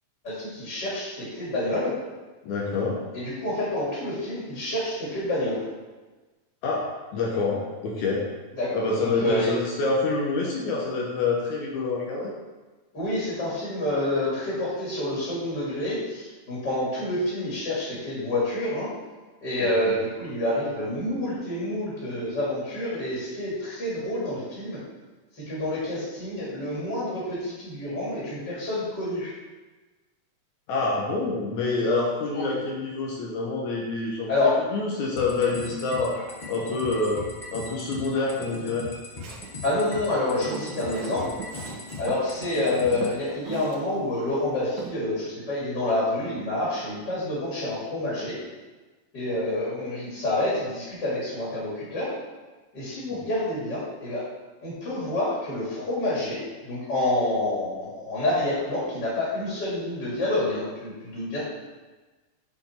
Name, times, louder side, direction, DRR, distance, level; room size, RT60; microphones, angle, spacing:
voice 1, 0.2-1.9 3.1-5.6 8.6-8.7 9.0-9.5 12.9-18.9 19.4-24.8 25.4-29.3 32.3-32.4 34.3-34.6 39.6-41.3 42.0-48.4 49.1-52.1 52.7-54.2 54.6-61.4, left 1 dB, 35° left, -7 dB, 3.0 m, -28 dB
voice 2, 2.4-3.0 6.6-8.2 8.7-12.3 19.6-20.0 30.7-34.3 34.7-36.2 36.5-37.2 37.5-38.9 53.1-53.2, left 3 dB, 75° left, -3 dB, 2.4 m, -27 dB
sound 1, 35.2-43.1, left 2 dB, 60° left, 0.4 m, -39 dB
Walk footsteps, 39.2-39.5 40.3-42.2 42.6-42.7 42.9-43.8 44.1-44.2 44.8-44.9, right 5 dB, 85° right, 2.5 m, -38 dB
9.1 x 5.2 x 4.4 m, 1.2 s
omnidirectional pair, 3.4 m